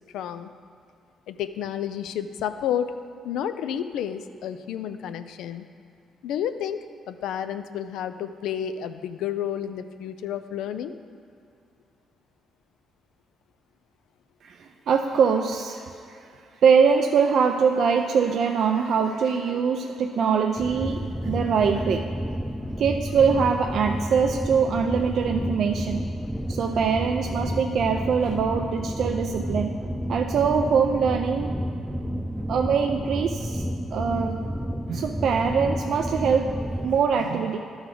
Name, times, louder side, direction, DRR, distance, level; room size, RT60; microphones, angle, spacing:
voice 1, 0.1-0.5 1.3-3.0 3.2-5.7 6.2-11.0, left 9 dB, 85° left, 10 dB, 0.3 m, -31 dB
voice 2, 14.4-16.2 16.6-22.1 22.8-26.1 26.5-29.8 30.1-31.5 32.5-34.4 34.9-36.5 36.8-37.6, right 6 dB, 65° right, 4 dB, 0.4 m, -23 dB
sound 1, 20.6-37.0, equal, ahead, 0.6 m, -31 dB
11.5 x 3.9 x 6.0 m, 2.5 s
cardioid pair, 90°, 0 cm